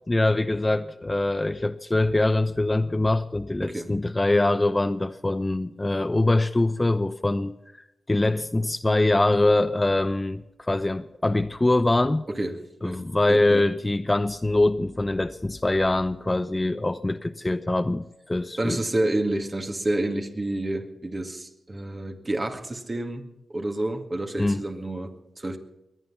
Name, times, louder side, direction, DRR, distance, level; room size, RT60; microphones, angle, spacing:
voice 1, 0.1-7.6 8.1-12.2 12.8-18.8 24.4-24.6, left 2 dB, 25° left, 0.8 m, -23 dB
voice 2, 12.3-13.0 13.3-13.7 18.6-25.6, right 1 dB, 35° right, 2.1 m, -29 dB
22.0 x 9.4 x 5.7 m
supercardioid pair, 40°, 0 cm